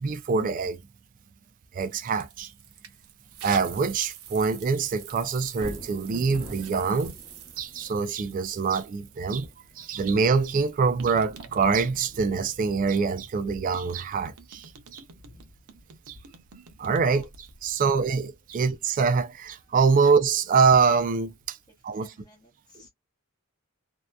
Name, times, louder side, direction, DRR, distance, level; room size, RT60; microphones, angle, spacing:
voice 1, 0.0-0.8 1.7-2.5 3.4-7.2 7.6-9.5 9.8-15.0 16.1-16.2 16.8-21.6 21.8-22.1, right 5 dB, 40° right, 0.3 m, -25 dB
sound 1, 1.8-10.0 10.5-13.4 13.7-17.6, right 7 dB, 80° right, 0.6 m, -47 dB
Thunder, 5.5-19.7 20.2-20.3, equal, 25° right, 0.9 m, -48 dB
voice 2, 17.8-18.2 18.5-18.6 20.0-20.1 21.7-22.9, left 1 dB, 20° left, 0.7 m, -54 dB
2.7 x 2.1 x 2.2 m
head